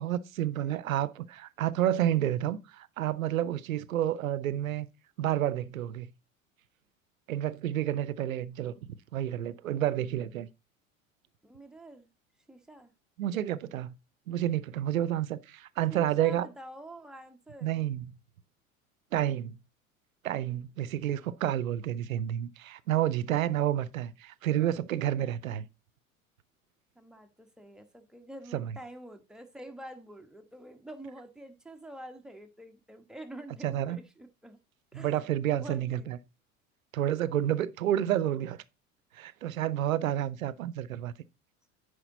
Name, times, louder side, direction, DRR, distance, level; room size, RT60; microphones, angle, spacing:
voice 1, 0.0-4.9 5.2-6.1 7.3-10.5 13.2-13.9 14.3-16.5 17.6-18.1 19.1-19.6 20.2-25.7 28.5-28.7 33.6-34.0 34.9-36.2 36.9-38.6 39.1-41.1, right 12 dB, 80° right, 0.7 m, -30 dB
voice 2, 11.4-12.1 12.5-12.9 15.9-17.8 26.9-34.6 34.9-36.1, right 1 dB, ahead, 1.3 m, -47 dB
9.9 x 5.0 x 3.9 m
figure-of-eight pair, 75°, 41 cm